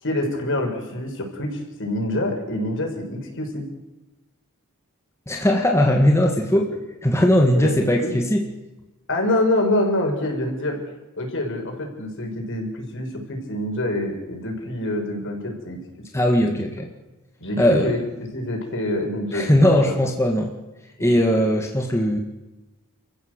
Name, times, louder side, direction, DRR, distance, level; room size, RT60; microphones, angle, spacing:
voice 1, 0.0-3.7 7.5-7.7 8.0-8.1 9.1-10.8 11.2-15.8 16.4-16.6 17.4-18.0 18.3-19.6 19.8-20.0 21.0-21.1, left 1 dB, 60° left, 2 dB, 6.1 m, -26 dB
voice 2, 5.3-6.7 7.0-8.5 16.1-16.9 17.6-17.9 19.3-20.5 21.0-22.2, equal, 10° left, 1 dB, 1.9 m, -19 dB
29.0 x 15.0 x 8.1 m, 1.1 s
head